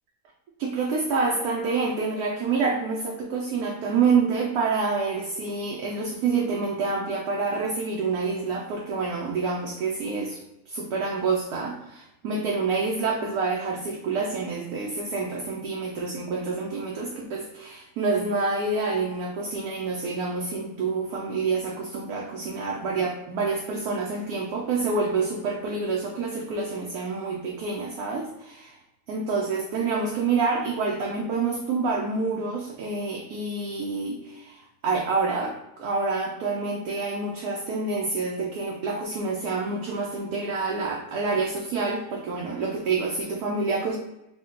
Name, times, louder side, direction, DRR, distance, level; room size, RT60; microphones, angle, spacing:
voice 1, 0.6-10.4 10.7-28.8 29.1-44.0, right 4 dB, 75° right, -1 dB, 1.0 m, -27 dB
3.6 x 2.2 x 3.7 m, 0.93 s
omnidirectional pair, 1.7 m